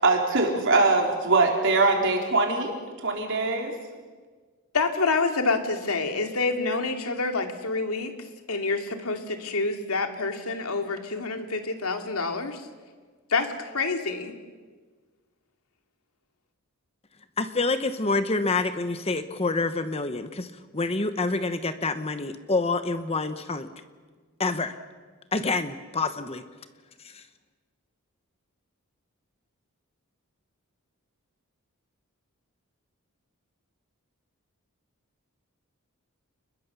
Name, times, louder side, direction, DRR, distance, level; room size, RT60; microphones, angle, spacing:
voice 1, 0.0-2.7 3.0-3.7, right 3 dB, 60° right, 2 dB, 4.3 m, -22 dB
voice 2, 4.7-8.1 8.5-12.6 13.3-14.3, left 3 dB, 80° left, 5 dB, 2.6 m, -27 dB
voice 3, 17.4-20.5 20.7-23.7 24.4-24.7 25.3-26.4 27.1-27.2, left 3 dB, 25° left, 10 dB, 1.0 m, -27 dB
29.5 x 21.0 x 7.0 m, 1.5 s
head